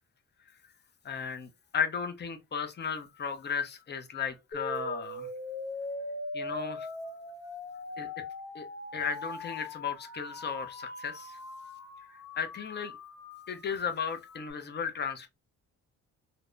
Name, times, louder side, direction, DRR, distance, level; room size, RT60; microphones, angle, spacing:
voice 1, 1.0-5.3 6.3-7.0 8.0-8.2 8.5-8.7 8.9-13.0 13.5-15.3, left 6 dB, 35° left, 0.6 m, -35 dB
sound 1, 4.5-14.5, left 2 dB, 70° left, 0.8 m, -41 dB
2.7 x 2.0 x 2.3 m
cardioid pair, 90°, 30 cm